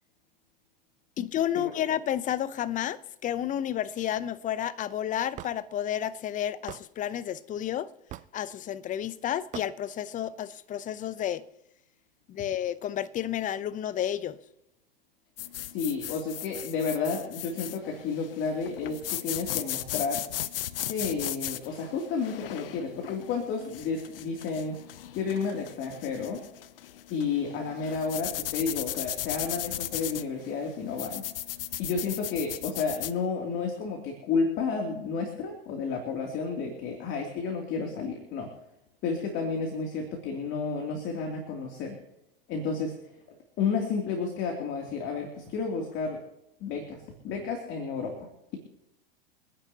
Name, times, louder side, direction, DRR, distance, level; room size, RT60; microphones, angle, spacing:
voice 1, 1.2-7.9 8.3-11.5 12.3-14.4, left 11 dB, 25° left, 0.8 m, -31 dB
Hammer / Wood, 5.4-5.6 6.7-6.9 8.1-8.4 9.5-9.7, right 13 dB, 25° right, 0.5 m, -40 dB
sound 1, 15.4-33.2, left 12 dB, 75° left, 0.7 m, -37 dB
voice 2, 15.7-20.2 20.9-24.7 25.1-26.4 27.1-31.2 31.8-38.5 39.0-41.9 42.5-42.9 43.6-46.2 46.6-48.6, left 5 dB, 40° left, 3.0 m, -31 dB
29.5 x 10.0 x 2.9 m
hypercardioid pair, 100°, 29 cm